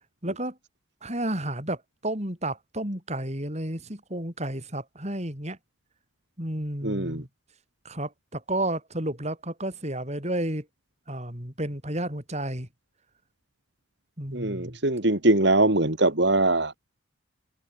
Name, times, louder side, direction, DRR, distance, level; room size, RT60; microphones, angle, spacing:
voice 1, 0.2-0.6 1.0-5.6 6.4-7.3 7.8-10.6 11.1-12.7 14.2-14.8, right 1 dB, 35° right, 6.3 m, -31 dB
voice 2, 6.8-7.2 14.3-16.7, right 2 dB, 55° right, 2.6 m, -22 dB
head